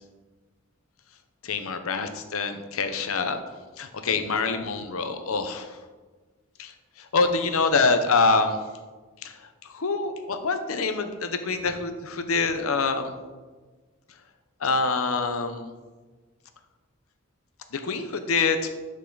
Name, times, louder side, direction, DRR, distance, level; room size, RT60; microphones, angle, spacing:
voice 1, 1.4-3.4 3.8-5.8 6.6-8.6 9.2-13.1 14.6-15.7 17.7-18.7, left 4 dB, 85° left, 8 dB, 0.8 m, -25 dB
10.0 x 5.5 x 3.9 m, 1.3 s
head